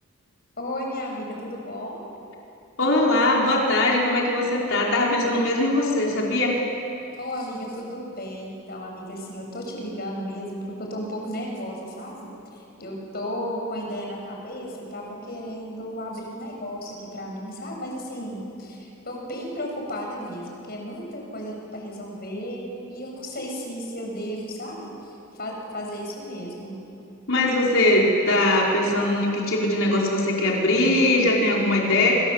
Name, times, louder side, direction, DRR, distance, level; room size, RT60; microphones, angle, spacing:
voice 1, 0.6-2.0 7.2-26.8, equal, 45° left, 0 dB, 7.2 m, -34 dB
voice 2, 2.8-6.6 27.3-32.1, left 1 dB, 60° left, -3 dB, 5.3 m, -21 dB
28.0 x 26.0 x 8.3 m, 2.7 s
head